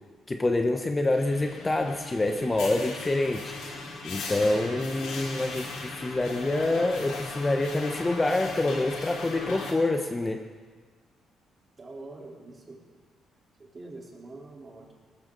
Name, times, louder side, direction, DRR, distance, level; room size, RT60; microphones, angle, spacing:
voice 1, 0.3-3.6 4.0-10.4, left 2 dB, 20° left, 4 dB, 1.0 m, -26 dB
sound 1, 1.1-9.7, left 3 dB, 90° left, 2.9 m, -38 dB
voice 2, 11.8-12.8 13.6-14.9, right 2 dB, 30° right, -3 dB, 3.9 m, -44 dB
19.5 x 13.5 x 4.0 m, 1.5 s
cardioid pair, 90°, 0 cm